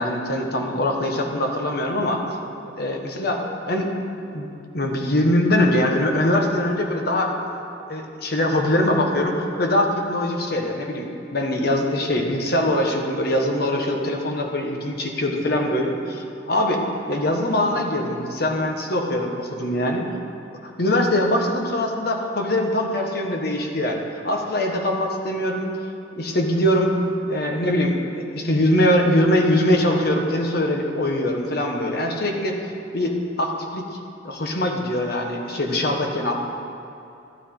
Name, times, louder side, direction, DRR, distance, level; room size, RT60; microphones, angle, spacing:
voice 1, 0.0-2.2 2.8-3.9 4.3-4.5 4.7-7.6 7.9-16.8 17.1-20.1 20.6-25.7 26.1-27.0 27.3-28.0 28.3-32.6 32.9-33.9 34.2-36.3, left 1 dB, 55° left, 2 dB, 1.4 m, -22 dB
12.5 x 12.0 x 3.9 m, 2.7 s
head